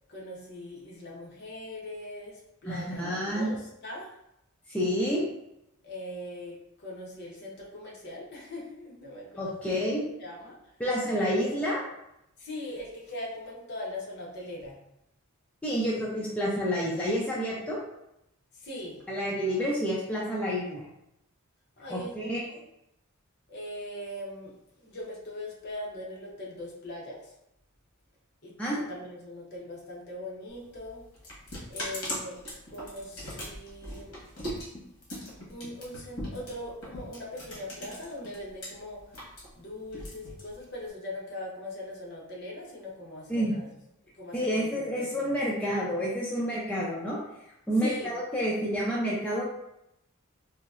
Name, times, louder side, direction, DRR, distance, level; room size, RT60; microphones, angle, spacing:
voice 1, 0.1-4.2 5.8-9.8 10.2-10.7 11.1-11.5 12.4-14.8 18.5-19.0 21.8-22.5 23.5-27.3 28.4-31.1 31.7-32.4 32.7-34.2 35.5-39.0 39.6-43.7 44.1-45.4 47.8-48.1, left 1 dB, 50° left, -3 dB, 0.7 m, -41 dB
voice 2, 2.7-3.5 4.7-5.2 9.4-10.0 10.8-11.8 15.6-17.8 19.1-20.8 21.9-22.4 28.6-28.8 43.3-43.5 44.3-47.2 47.7-49.4, equal, 5° left, -6 dB, 0.3 m, -29 dB
sound 1, 30.5-38.7 39.0-40.9, equal, 65° left, 1.2 m, -39 dB
3.8 x 2.0 x 2.4 m, 0.83 s
head